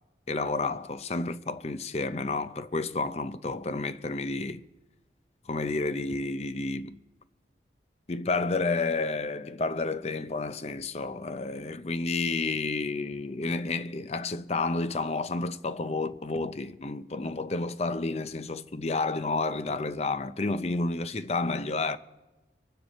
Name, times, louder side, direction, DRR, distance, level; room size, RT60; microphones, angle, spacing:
voice 1, 0.3-4.6 5.5-7.0 8.1-22.0, left 3 dB, 35° left, 0.6 m, -30 dB
25.0 x 9.4 x 4.2 m
head